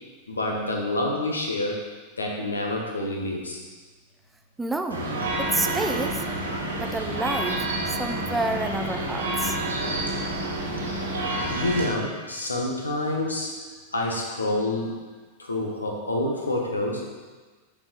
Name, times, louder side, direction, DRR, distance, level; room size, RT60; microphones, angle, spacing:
voice 1, 0.3-1.8 2.2-3.6 11.5-13.5 13.9-15.0 15.4-17.0, left 1 dB, 75° left, 0 dB, 1.3 m, -27 dB
voice 2, 4.6-5.1 5.4-6.3 6.8-9.6, right 2 dB, 10° right, 6 dB, 0.6 m, -29 dB
sound 1, 4.9-11.9, right 1 dB, 75° right, 1.6 m, -28 dB
7.4 x 4.8 x 5.3 m, 1.4 s
figure-of-eight pair, 90°, 0 cm